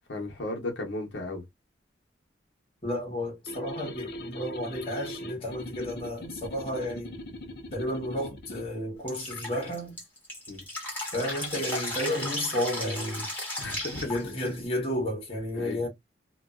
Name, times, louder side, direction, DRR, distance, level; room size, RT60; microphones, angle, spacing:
voice 1, 0.1-1.4 10.5-10.6 13.6-14.1 15.5-15.8, left 2 dB, 75° left, 0.9 m, -35 dB
voice 2, 2.8-7.1 7.7-10.0 11.1-13.3 14.1-15.9, left 1 dB, 30° left, 1.1 m, -32 dB
sound 1, 3.5-8.7, equal, 55° left, 0.5 m, -41 dB
Drip, 9.1-14.7, left 1 dB, 10° left, 1.1 m, -35 dB
2.5 x 2.3 x 2.4 m
head